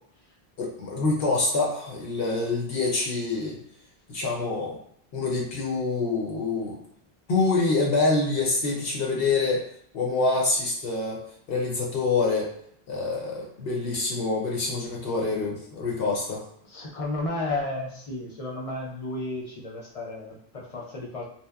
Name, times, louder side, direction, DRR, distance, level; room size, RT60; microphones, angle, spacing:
voice 1, 0.6-3.6 4.1-4.8 5.1-6.8 7.3-9.7 9.9-11.2 11.5-12.5 12.9-16.4, left 3 dB, 70° left, -2 dB, 0.8 m, -26 dB
voice 2, 16.6-21.2, left 2 dB, 50° left, -2 dB, 0.4 m, -33 dB
2.8 x 2.0 x 2.2 m, 0.65 s
omnidirectional pair, 1.0 m